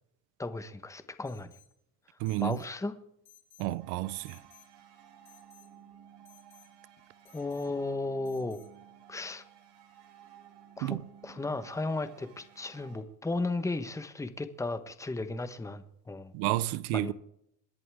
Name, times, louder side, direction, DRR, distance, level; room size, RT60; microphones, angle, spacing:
voice 1, 0.4-1.6 2.4-2.9 7.3-8.6 9.1-9.4 10.8-11.0 11.2-16.3 16.9-17.1, left 2 dB, 5° left, 1.1 m, -35 dB
Alarm, 1.3-1.7 2.3-2.7 3.3-3.7 4.3-4.7 5.3-5.7 6.3-6.7 7.3-7.7 8.3-8.7, left 10 dB, 50° left, 4.0 m, -60 dB
voice 2, 2.2-2.6 3.6-4.4 10.8-11.0 16.3-17.1, right 17 dB, 85° right, 0.9 m, -31 dB
sound 1, 3.8-13.0, right 9 dB, 60° right, 6.2 m, -55 dB
27.5 x 11.0 x 3.6 m
cardioid pair, 130°, 47 cm